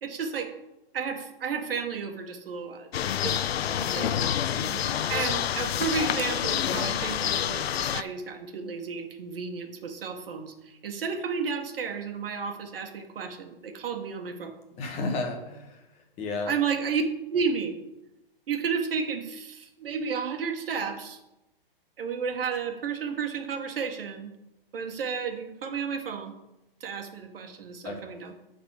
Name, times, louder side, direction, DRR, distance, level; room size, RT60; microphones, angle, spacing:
voice 1, 0.0-0.5 0.9-3.4 3.7-4.3 5.1-14.5 16.5-17.0 17.3-17.8 18.5-21.2 22.0-24.3 24.7-26.4 26.8-28.3, right 6 dB, 70° right, 6 dB, 1.5 m, -32 dB
sound 1, 2.9-8.0, left 10 dB, 90° left, 0.5 m, -28 dB
voice 2, 4.5-4.8 14.8-16.5 27.8-27.9, left 3 dB, 20° left, 2 dB, 1.3 m, -33 dB
8.2 x 4.0 x 6.4 m, 0.94 s
hypercardioid pair, 150°, 30 cm